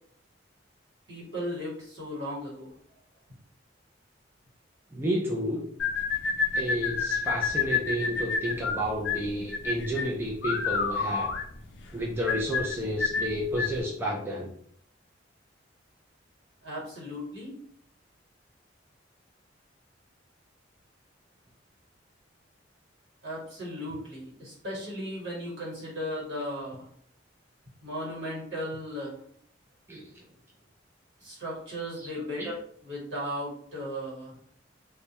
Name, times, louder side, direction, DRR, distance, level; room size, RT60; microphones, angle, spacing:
voice 1, 1.1-2.7 16.6-17.5 23.2-26.8 27.8-29.2 31.2-32.5 32.8-34.3, equal, 70° right, -5 dB, 1.2 m, -36 dB
voice 2, 4.9-5.7 6.5-11.3 11.9-14.5 29.9-30.0 32.0-32.1 32.4-32.5, equal, 10° right, -2 dB, 0.3 m, -31 dB
sound 1, 5.8-13.8, left 5 dB, 70° left, 0.4 m, -29 dB
2.2 x 2.1 x 2.8 m, 0.63 s
head